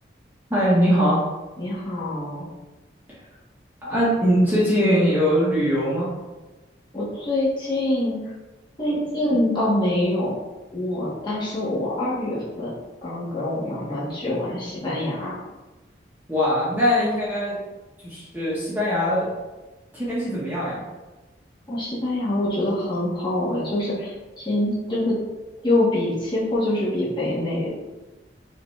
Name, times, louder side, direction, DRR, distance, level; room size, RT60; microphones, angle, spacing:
voice 1, 0.5-1.2 3.8-6.1 16.3-17.6 18.0-19.3 19.9-20.8, equal, 10° right, -9 dB, 1.2 m, -21 dB
voice 2, 1.6-2.5 6.9-8.2 8.8-10.3 10.7-12.7 13.0-15.4 21.7-25.2 25.6-27.7, left 1 dB, 25° left, -9 dB, 1.5 m, -25 dB
5.8 x 2.9 x 3.2 m, 1.1 s
head